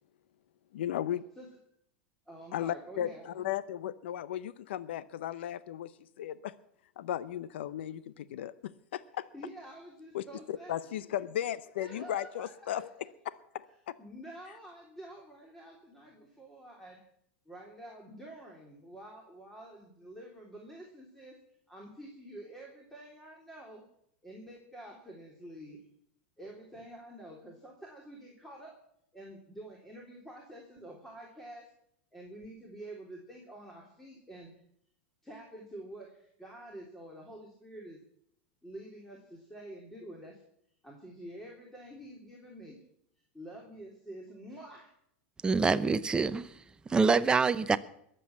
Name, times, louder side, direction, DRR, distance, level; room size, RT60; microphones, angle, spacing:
voice 1, 0.7-1.2 2.5-6.5 7.0-9.3 10.1-13.7, left 11 dB, 80° left, 16 dB, 0.7 m, -36 dB
voice 2, 2.3-3.5 9.3-10.7 11.8-12.9 14.0-17.0 17.4-21.3 21.7-23.8 24.2-25.8 26.4-28.7 29.1-31.7 32.1-34.6 35.2-38.0 38.6-40.4 40.8-42.8 43.3-44.9, right 1 dB, 5° left, -2 dB, 3.3 m, -48 dB
voice 3, 45.4-46.5 46.9-47.8, right 4 dB, 15° right, 13 dB, 0.8 m, -25 dB
21.5 x 7.8 x 7.3 m, 0.72 s
supercardioid pair, 120°, 6 cm